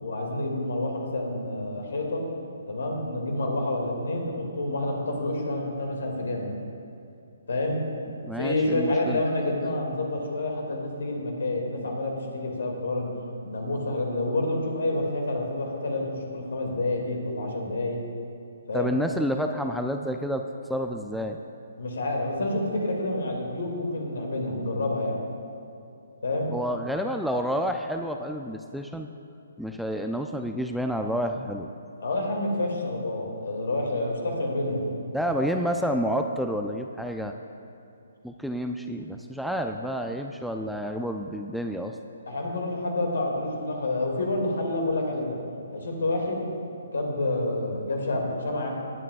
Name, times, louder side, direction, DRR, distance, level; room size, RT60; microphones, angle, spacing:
voice 1, 0.0-2.3 2.7-6.6 7.5-7.8 8.4-13.1 13.4-18.0 18.7-19.0 21.8-25.2 26.2-26.5 32.0-34.9 35.4-35.5 42.3-45.4 45.7-46.5 46.9-48.7, left 2 dB, 80° left, 1 dB, 2.3 m, -28 dB
voice 2, 8.2-9.2 18.7-21.4 26.5-29.1 29.6-31.7 35.1-37.3 38.2-42.0, equal, ahead, 4 dB, 0.3 m, -29 dB
19.5 x 8.5 x 2.5 m, 2.7 s
hypercardioid pair, 150°, 0 cm